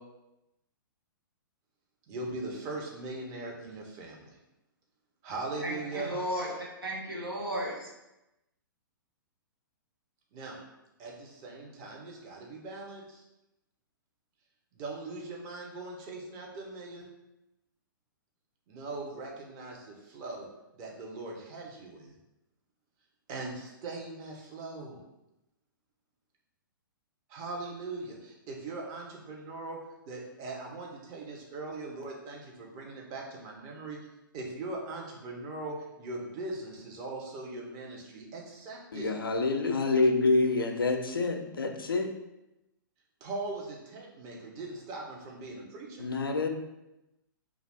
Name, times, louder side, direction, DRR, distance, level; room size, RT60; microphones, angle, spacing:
voice 1, 2.1-4.4 5.2-6.1 10.3-10.6 11.0-13.2 14.7-17.1 18.7-20.5 20.7-22.1 23.3-25.0 27.3-29.8 30.1-34.0 34.3-39.1 43.2-46.1, right 2 dB, 30° right, -1 dB, 0.6 m, -40 dB
voice 2, 5.6-7.8, equal, 85° right, -3 dB, 0.8 m, -34 dB
voice 3, 38.9-42.1 46.0-46.5, left 3 dB, 80° left, 4 dB, 0.4 m, -27 dB
2.4 x 2.4 x 3.4 m, 0.93 s
figure-of-eight pair, 115°, 12 cm